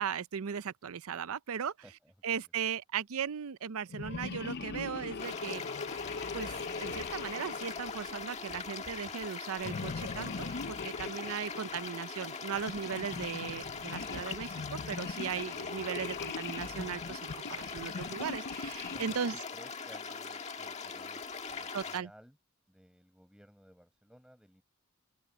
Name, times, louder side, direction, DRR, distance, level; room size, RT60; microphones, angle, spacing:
voice 1, 0.0-1.7 2.2-5.6 6.3-19.3 21.7-22.1, right 7 dB, 75° right, 0.5 m, -37 dB
voice 2, 1.8-2.5 11.1-11.4 15.5-15.7 18.9-22.4 22.7-24.6, equal, 5° right, 5.4 m, -59 dB
sound 1, 3.9-8.7 9.6-11.9 12.5-19.4, left 4 dB, 45° left, 0.5 m, -41 dB
sound 2, 5.2-22.0, left 5 dB, 30° left, 1.7 m, -41 dB
open air
head